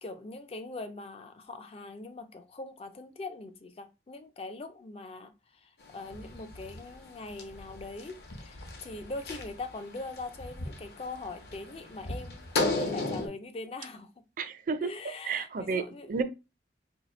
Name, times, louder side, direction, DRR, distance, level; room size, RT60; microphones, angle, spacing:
voice 1, 0.0-14.2 14.8-16.1, left 2 dB, 35° left, 0.4 m, -42 dB
sound 1, 5.8-13.3, left 2 dB, 60° left, 0.8 m, -36 dB
voice 2, 14.4-14.9 15.2-16.2, right 5 dB, 50° right, 0.4 m, -31 dB
2.8 x 2.7 x 4.1 m
head